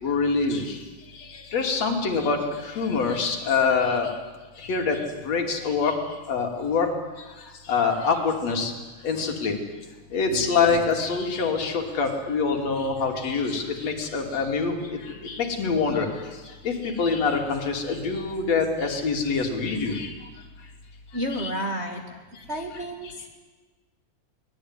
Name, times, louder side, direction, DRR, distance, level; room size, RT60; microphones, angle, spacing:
voice 1, 0.0-0.8 1.1-4.1 4.6-6.0 6.3-6.9 7.2-7.3 7.7-8.7 9.0-9.6 10.1-16.1 16.6-20.1 21.3-21.5 23.0-23.1, left 5 dB, 60° left, 3 dB, 3.9 m, -25 dB
voice 2, 21.1-22.2 22.5-23.3, equal, 25° right, 1 dB, 2.0 m, -31 dB
24.5 x 19.5 x 9.8 m, 1.3 s
omnidirectional pair, 3.5 m